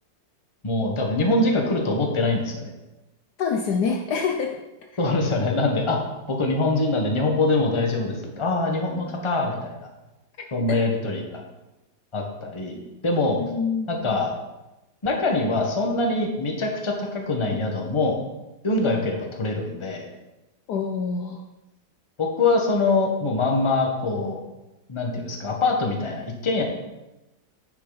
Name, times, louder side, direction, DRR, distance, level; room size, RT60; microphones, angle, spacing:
voice 1, 0.6-2.7 5.0-6.0 6.3-9.9 10.5-11.4 12.1-13.4 13.9-14.3 15.0-18.2 18.6-20.0 22.2-24.4 24.9-26.6, left 2 dB, 20° left, 1 dB, 1.0 m, -24 dB
voice 2, 3.4-4.6 10.7-10.8 13.4-14.2 20.7-21.4, left 5 dB, 70° left, 4 dB, 1.1 m, -26 dB
10.0 x 6.7 x 4.0 m, 1.0 s
omnidirectional pair, 2.1 m